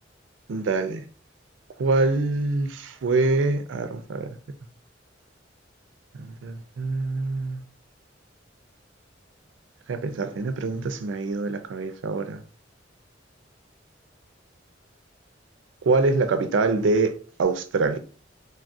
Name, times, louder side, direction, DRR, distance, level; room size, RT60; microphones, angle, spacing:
voice 1, 0.5-1.0 1.8-4.4 6.2-7.6 9.9-12.4 15.8-18.0, right 3 dB, 90° right, 0.4 m, -25 dB
3.3 x 2.3 x 2.5 m
head